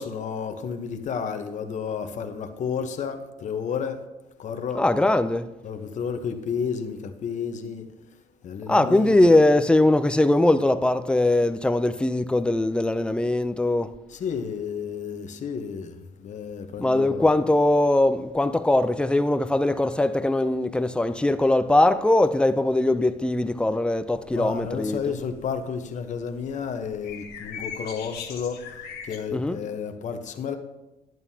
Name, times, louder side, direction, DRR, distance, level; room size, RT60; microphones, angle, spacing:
voice 1, 0.0-4.0 4.4-4.8 5.6-7.8 8.4-9.1 14.1-17.3 24.3-28.6 29.0-30.6, left 6 dB, 45° left, 0.9 m, -31 dB
voice 2, 4.7-5.5 8.7-13.9 16.8-25.0 29.3-29.6, left 2 dB, 5° left, 0.4 m, -21 dB
sound 1, 24.1-29.2, left 6 dB, 70° left, 1.3 m, -41 dB
11.0 x 9.1 x 2.8 m
cardioid pair, 110°, 17 cm